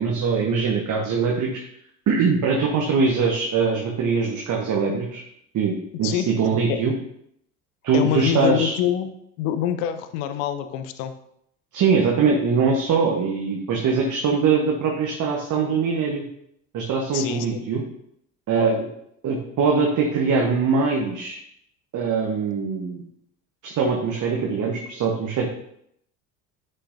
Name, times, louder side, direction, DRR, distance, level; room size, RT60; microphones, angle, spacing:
voice 1, 0.0-1.5 2.1-5.2 5.5-6.9 7.8-8.7 11.7-16.2 16.7-17.8 18.5-18.9 19.2-21.4 21.9-23.0 23.6-25.5, right 5 dB, 40° right, 0 dB, 1.3 m, -22 dB
voice 2, 6.0-6.8 7.9-9.1 9.4-11.1 17.1-17.6, left 10 dB, 60° left, 9 dB, 0.8 m, -26 dB
9.8 x 5.7 x 2.7 m, 0.73 s
figure-of-eight pair, 60°, 44 cm